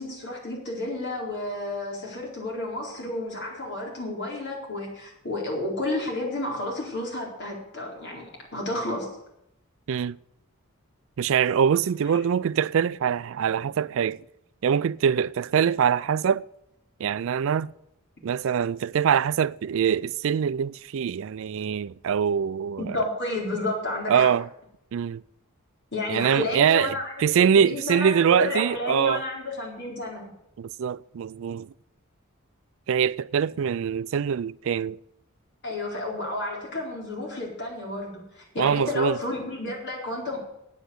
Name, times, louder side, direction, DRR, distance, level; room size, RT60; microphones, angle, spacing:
voice 1, 0.0-9.1 12.1-12.2 22.8-24.3 25.9-30.3 35.6-40.4, left 2 dB, 50° left, 4.2 m, -31 dB
voice 2, 11.2-14.2 14.6-16.4 17.0-17.7 18.2-23.0 24.1-24.5 24.9-25.2 26.1-29.2 30.6-31.7 32.9-35.0 38.6-39.2, right 7 dB, 60° right, 0.3 m, -23 dB
9.0 x 8.3 x 8.3 m
head